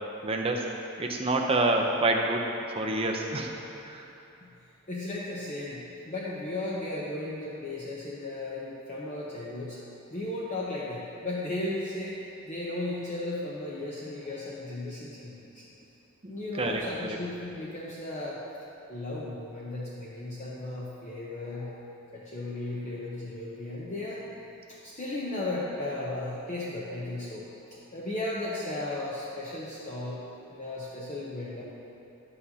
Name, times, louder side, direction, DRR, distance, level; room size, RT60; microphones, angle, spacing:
voice 1, 0.2-0.6 1.0-2.4 2.7-3.5 3.8-4.0 16.2-17.2, right 2 dB, 25° right, 1 dB, 0.6 m, -27 dB
voice 2, 4.4-9.8 10.1-15.6 16.3-18.4 18.9-21.8 22.1-24.3 24.7-27.5 27.9-30.2 30.5-31.6, left 2 dB, 30° left, -6 dB, 0.7 m, -35 dB
10.5 x 8.3 x 2.8 m, 2.8 s
head